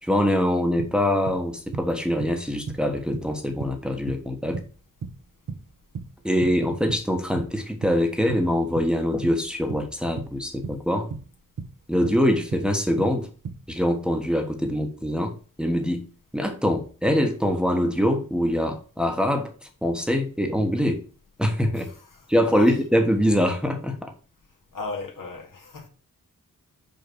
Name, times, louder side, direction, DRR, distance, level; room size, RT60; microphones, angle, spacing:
voice 1, 0.0-4.6 6.2-11.1 11.9-13.3 13.7-16.0 16.3-21.0 21.4-21.9 22.3-24.1, equal, 5° right, 1.2 m, -24 dB
sound 1, 0.8-7.1 7.4-13.7, right 5 dB, 70° right, 1.2 m, -36 dB
voice 2, 24.7-25.9, left 3 dB, 75° left, 2.2 m, -35 dB
5.6 x 5.4 x 6.1 m
wide cardioid pair, 100°, 33 cm